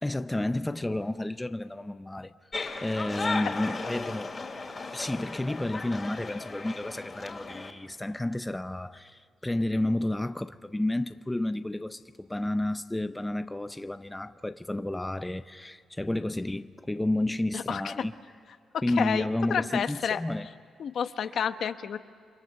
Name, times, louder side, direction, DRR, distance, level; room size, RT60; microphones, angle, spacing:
voice 1, 0.0-2.3 2.8-4.3 4.9-18.1 18.8-20.5, left 1 dB, 10° left, 0.6 m, -31 dB
sound 1, 2.5-7.7, left 3 dB, 30° left, 2.8 m, -36 dB
voice 2, 17.5-17.9 18.7-20.2 20.8-22.0, left 7 dB, 65° left, 1.0 m, -30 dB
29.5 x 25.0 x 6.8 m
cardioid pair, 105°, 0 cm